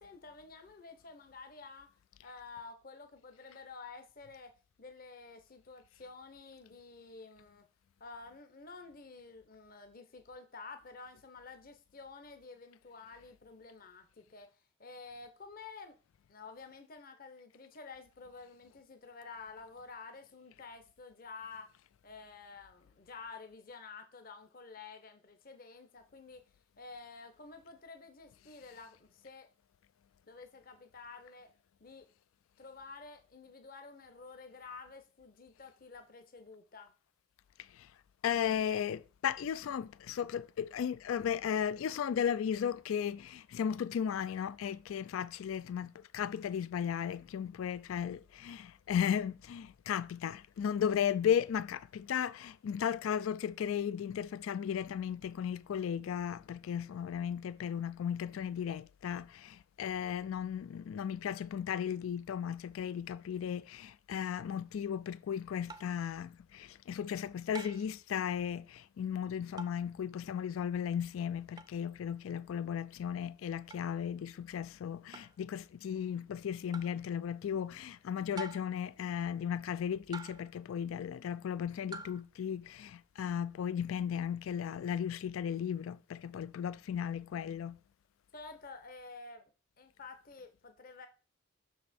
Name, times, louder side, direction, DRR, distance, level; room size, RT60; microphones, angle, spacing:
voice 1, 0.0-1.9 2.2-7.7 8.0-15.9 16.3-21.8 22.0-26.4 26.8-29.5 30.2-31.5 31.8-32.1 32.6-36.9 88.3-91.1, left 4 dB, 45° left, 0.8 m, -50 dB
voice 2, 37.6-37.9 38.2-87.8, left 8 dB, 90° left, 0.3 m, -35 dB
sound 1, 65.7-66.0 67.5-67.9 69.6-69.9 71.6-71.8 73.7-73.9 75.1-75.4 76.7-77.0 78.4-78.8 80.1-80.6 81.9-82.2, right 3 dB, 20° right, 0.4 m, -46 dB
6.2 x 4.9 x 4.2 m
head